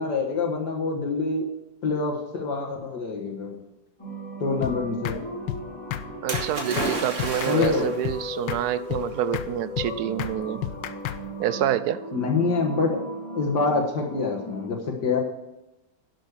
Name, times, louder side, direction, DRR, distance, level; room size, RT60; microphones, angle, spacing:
voice 1, 0.0-1.5 1.8-3.6 4.4-5.2 7.5-7.9 12.1-13.0 13.3-15.2, left 4 dB, 65° left, -1 dB, 2.0 m, -26 dB
sound 1, 4.0-14.7, equal, 15° left, 4.9 m, -37 dB
sound 2, 4.6-4.8 5.0-5.2 5.5-5.6 5.9-6.1 6.3-6.5 6.8-6.9 7.2-7.8 8.0-8.2 8.5-8.6 8.9-9.1 9.3-9.5 9.8-9.9 10.2-10.3 10.6-11.2, left 12 dB, 85° left, 1.4 m, -30 dB
voice 2, 6.2-10.6 11.4-12.0, right 11 dB, 70° right, 15 dB, 1.0 m, -27 dB
Splash splatter, 6.3-8.1 9.0-9.1, right 2 dB, 45° right, 2.4 m, -31 dB
11.5 x 6.3 x 6.7 m, 0.96 s
omnidirectional pair, 2.0 m